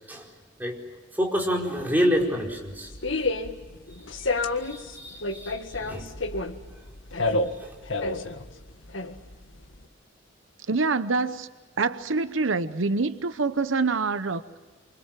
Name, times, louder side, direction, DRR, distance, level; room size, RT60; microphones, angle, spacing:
voice 1, 1.1-2.9 3.9-6.1 7.6-7.8, equal, 10° right, -1 dB, 4.7 m, -28 dB
sound 1, 2.2-9.9, left 2 dB, 80° left, 1.8 m, -30 dB
voice 2, 10.7-11.5 11.8-14.4, right 4 dB, 85° right, 12 dB, 0.9 m, -25 dB
28.5 x 25.0 x 7.6 m, 1.3 s
head